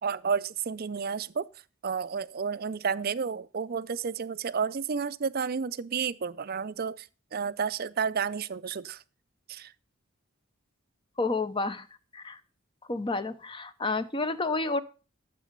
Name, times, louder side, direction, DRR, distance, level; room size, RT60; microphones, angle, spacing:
voice 1, 0.0-1.5 1.8-9.0 9.5-9.7, right 6 dB, 45° right, 0.5 m, -31 dB
voice 2, 11.2-11.9 12.1-12.4 12.9-14.8, left 3 dB, 25° left, 0.8 m, -30 dB
12.5 x 7.5 x 5.2 m
head